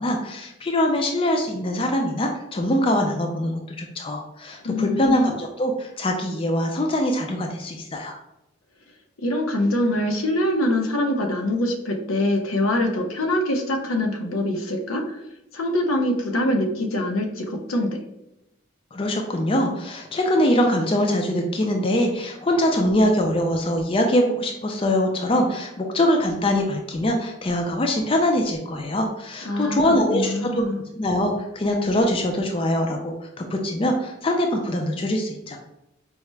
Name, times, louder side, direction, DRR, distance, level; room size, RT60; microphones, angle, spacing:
voice 1, 0.0-8.1 18.9-30.6 30.9-35.6, left 1 dB, 25° left, 2 dB, 0.3 m, -23 dB
voice 2, 4.6-5.3 9.2-15.2 15.5-18.0 29.5-29.8 30.1-30.8, left 1 dB, 90° left, 3 dB, 0.6 m, -24 dB
4.7 x 2.1 x 3.2 m, 0.89 s
head